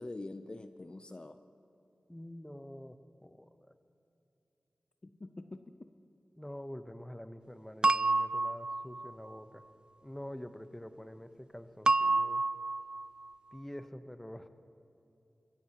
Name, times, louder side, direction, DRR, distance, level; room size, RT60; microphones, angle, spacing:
voice 1, 0.0-1.4 5.0-5.9, left 2 dB, 40° left, 9 dB, 0.6 m, -45 dB
voice 2, 2.1-3.0 3.2-3.5 6.3-9.6 10.0-12.4 13.5-14.5, equal, 10° left, 9 dB, 0.9 m, -46 dB
sound 1, 7.8-9.1 11.9-13.1, right 3 dB, 35° right, 0.3 m, -29 dB
25.0 x 15.0 x 3.0 m, 2.9 s
cardioid pair, 40°, 2 cm